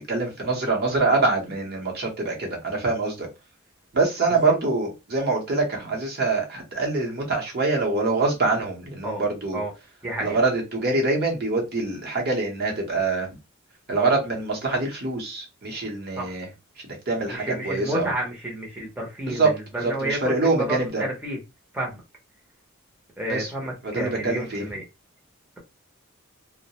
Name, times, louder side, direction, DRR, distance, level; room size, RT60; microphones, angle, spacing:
voice 1, 0.1-3.3 3.9-9.6 10.2-13.3 13.9-16.5 16.8-18.1 19.3-19.5 19.8-21.0 23.3-23.5 23.8-24.7, right 3 dB, 50° right, 0.8 m, -25 dB
voice 2, 10.0-10.4 16.2-16.3 17.3-21.4 21.7-22.0 23.2-24.8, right 1 dB, 10° right, 0.6 m, -30 dB
2.3 x 2.1 x 2.8 m
head